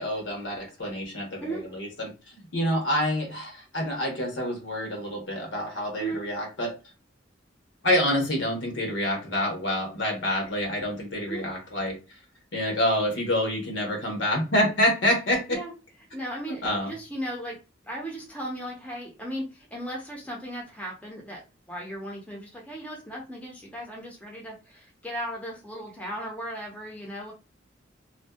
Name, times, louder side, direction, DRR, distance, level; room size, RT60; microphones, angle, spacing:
voice 1, 0.0-6.7 7.8-12.2 12.5-15.6 16.6-16.9, left 1 dB, 80° left, 1 dB, 1.0 m, -27 dB
voice 2, 16.1-21.4 21.7-27.3, right 1 dB, 5° left, -1 dB, 0.6 m, -36 dB
2.6 x 2.2 x 2.2 m, 0.30 s
head